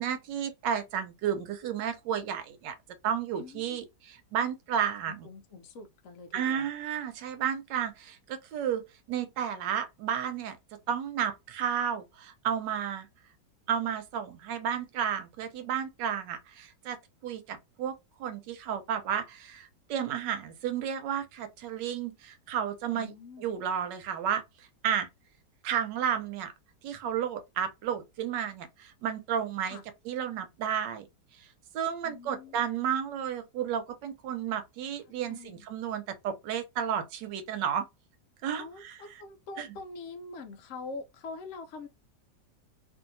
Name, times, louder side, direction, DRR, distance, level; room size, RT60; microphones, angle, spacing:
voice 1, 0.0-2.7 3.0-5.3 6.3-8.8 9.1-10.6 10.9-13.1 13.7-17.0 17.2-17.9 18.2-23.1 23.4-24.4 24.8-25.1 25.6-26.5 26.8-29.8 30.1-31.1 31.7-37.9 38.4-38.9 39.6-39.7, right 8 dB, 85° right, 1.3 m, -32 dB
voice 2, 3.4-3.8 5.1-6.7 22.9-23.5 29.7-29.8 32.0-32.9 35.2-35.7 38.6-41.9, left 3 dB, 75° left, 0.7 m, -44 dB
2.7 x 2.6 x 2.6 m
omnidirectional pair, 1.9 m